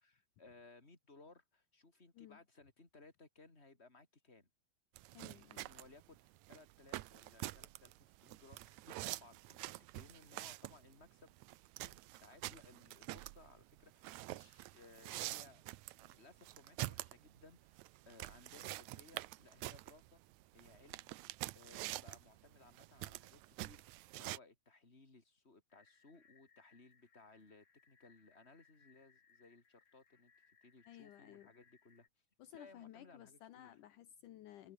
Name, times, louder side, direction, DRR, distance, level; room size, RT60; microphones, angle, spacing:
voice 1, 0.0-4.5 5.3-11.3 11.8-15.6 16.0-17.8 18.1-20.2 20.5-21.1 21.5-30.3 30.6-32.1 32.5-33.7, left 3 dB, 20° left, 4.4 m, -62 dB
sound 1, 5.0-24.4, right 17 dB, 75° right, 1.7 m, -47 dB
voice 2, 5.1-5.7 30.9-31.5 32.4-34.7, left 12 dB, 70° left, 2.6 m, -56 dB
sound 2, 25.7-32.1, left 5 dB, 45° left, 1.0 m, -70 dB
omnidirectional pair, 3.9 m